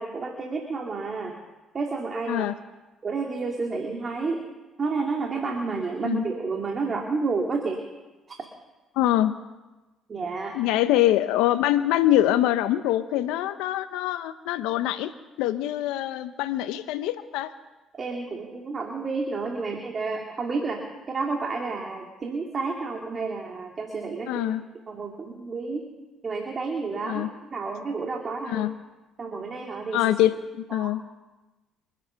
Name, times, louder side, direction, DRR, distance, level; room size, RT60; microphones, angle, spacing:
voice 1, 0.0-1.4 1.7-2.5 3.0-4.5 4.8-7.9 8.3-8.4 10.1-10.6 17.9-24.5 24.9-25.9 26.2-27.2 27.5-28.7 29.2-30.0 30.7-31.0, right 4 dB, 40° right, 2 dB, 2.4 m, -30 dB
voice 2, 9.0-9.4 10.5-15.1 15.4-17.5 24.3-24.6 27.0-27.3 28.5-28.8 29.9-31.0, left 13 dB, 80° left, 10 dB, 0.7 m, -24 dB
26.5 x 9.2 x 5.7 m, 1.1 s
supercardioid pair, 70°, 0 cm